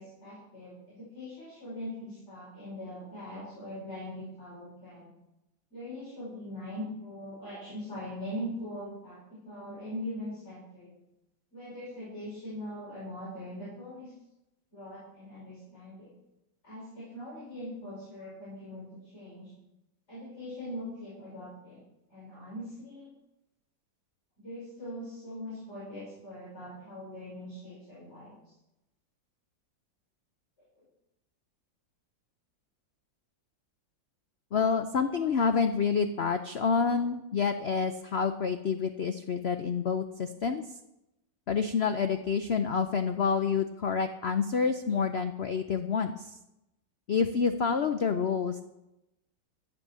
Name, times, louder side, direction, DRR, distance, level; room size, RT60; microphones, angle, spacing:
voice 1, 0.0-5.1 5.7-10.9 11.5-14.1 14.7-16.1 16.6-19.5 20.1-21.8 22.1-23.1 24.4-28.5 30.8-30.9, left 1 dB, 35° left, -8 dB, 5.8 m, -41 dB
voice 2, 34.5-40.6 41.5-46.3 47.1-48.6, left 5 dB, 70° left, 8 dB, 0.6 m, -28 dB
14.0 x 8.2 x 6.9 m, 0.89 s
omnidirectional pair, 2.0 m